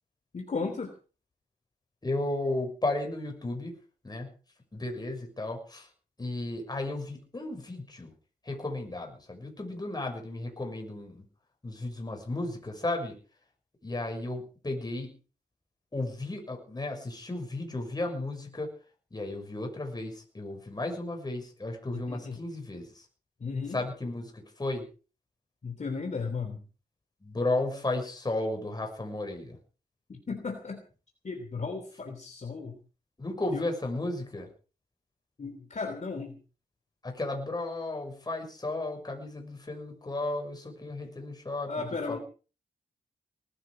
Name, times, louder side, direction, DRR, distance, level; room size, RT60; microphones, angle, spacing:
voice 1, 0.3-0.9 21.9-22.4 23.4-23.8 25.6-26.6 30.1-30.8 31.2-32.8 33.5-33.7 35.4-36.4 41.7-42.2, left 4 dB, 45° left, 3 dB, 3.2 m, -35 dB
voice 2, 2.0-3.7 4.0-4.3 4.7-5.9 6.2-8.1 8.4-11.2 11.6-13.2 13.8-15.2 15.9-18.7 19.1-23.0 23.7-24.9 27.2-29.6 33.2-34.5 37.0-41.7 42.1-42.2, left 2 dB, 25° left, 2 dB, 6.4 m, -34 dB
19.5 x 12.5 x 5.1 m, 0.38 s
wide cardioid pair, 120°, 17 cm